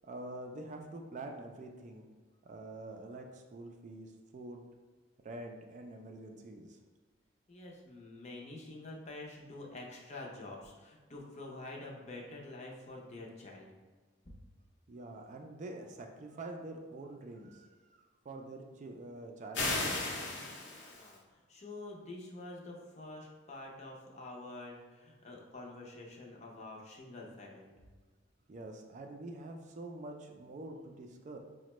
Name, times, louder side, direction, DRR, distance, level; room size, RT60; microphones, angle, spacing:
voice 1, 0.0-2.0 2.4-4.6 5.2-6.8 14.9-20.1 28.5-31.4, right 2 dB, 40° right, 3 dB, 0.3 m, -46 dB
voice 2, 7.5-13.7 20.9-27.7, left 2 dB, 35° left, -1 dB, 0.6 m, -47 dB
sound 1, 19.5-21.1, left 2 dB, 75° left, 0.8 m, -35 dB
4.9 x 2.1 x 3.0 m, 1.4 s
head